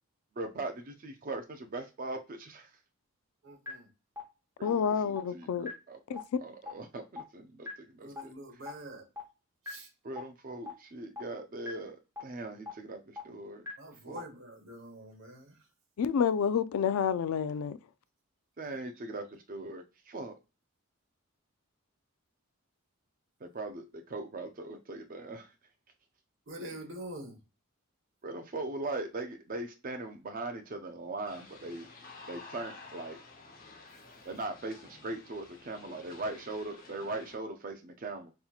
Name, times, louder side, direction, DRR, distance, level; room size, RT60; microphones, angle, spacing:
voice 1, 0.4-2.7 4.6-6.0 6.4-8.3 10.0-13.6 14.1-14.2 18.6-20.3 23.4-25.5 28.2-31.9 32.3-33.2 34.2-38.3, right 2 dB, 40° right, 0.5 m, -40 dB
voice 2, 3.4-3.9 8.0-9.1 9.6-9.9 13.8-15.7 18.7-18.8 26.5-27.4, right 1 dB, 60° right, 1.2 m, -45 dB
sound 1, 3.7-3.8 4.2-4.3 4.7-4.8 5.2-5.3 5.7-5.8 6.2-6.3 6.7-6.8 7.2-7.3 7.7-7.8 8.2-8.3 8.7-8.8 9.2-9.3 9.7-9.8 10.2-10.3 10.7-10.8 11.2-11.3 11.7-11.8 12.2-12.3 12.7-12.8 13.2-13.3 13.7-13.8 14.2-14.3, left 4 dB, 15° right, 0.8 m, -39 dB
voice 3, 4.6-5.7 6.1-6.2 16.0-17.8, left 7 dB, 85° left, 0.3 m, -29 dB
sound 2, 31.3-37.3, left 3 dB, 40° left, 0.8 m, -52 dB
5.4 x 2.9 x 2.3 m
head